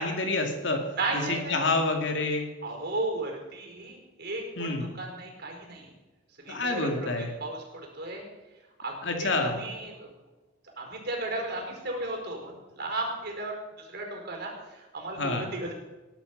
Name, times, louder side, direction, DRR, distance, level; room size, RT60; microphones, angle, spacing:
voice 1, 0.0-0.8 1.1-2.4 4.6-4.9 6.5-7.3 9.0-9.6 15.2-15.5, left 2 dB, 60° left, 3 dB, 2.6 m, -28 dB
voice 2, 1.0-1.8 2.6-5.9 6.4-6.9 7.2-8.2 8.8-8.9 9.2-10.1 10.8-13.6 13.9-15.7, right 2 dB, 55° right, 1 dB, 4.8 m, -35 dB
19.5 x 11.5 x 5.5 m, 1.1 s
head